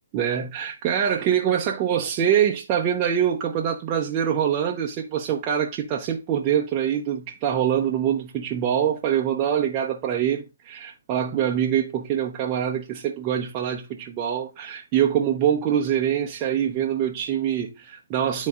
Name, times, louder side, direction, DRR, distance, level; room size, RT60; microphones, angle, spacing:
voice 1, 0.1-18.5, right 9 dB, 30° right, 0.8 m, -24 dB
11.5 x 4.1 x 2.4 m
hypercardioid pair, 140°, 0 cm